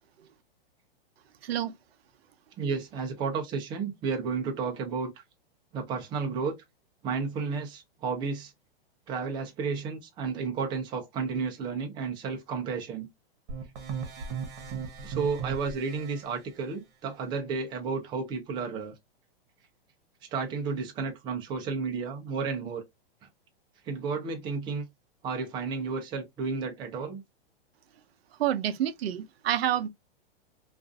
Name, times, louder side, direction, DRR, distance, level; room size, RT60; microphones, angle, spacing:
voice 1, 2.6-5.2 5.7-6.6 7.0-8.5 9.1-13.1 15.0-18.9 20.3-22.8 23.9-24.9 25.2-27.2, right 5 dB, 15° right, 0.4 m, -32 dB
sound 1, 13.5-16.2, right 6 dB, 40° right, 0.9 m, -36 dB
voice 2, 28.4-29.9, right 11 dB, 75° right, 0.5 m, -28 dB
2.4 x 2.3 x 2.3 m
hypercardioid pair, 135°, 31 cm